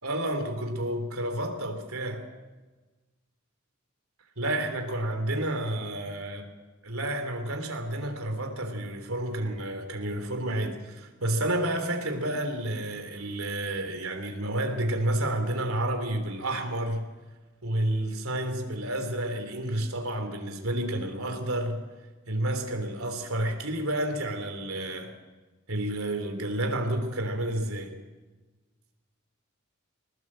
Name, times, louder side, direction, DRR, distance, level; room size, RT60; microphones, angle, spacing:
voice 1, 0.0-2.3 4.4-6.4 6.9-17.1 17.6-21.8 22.3-25.1 25.7-27.9, right 1 dB, 75° right, 3.5 m, -30 dB
21.5 x 18.5 x 7.6 m
head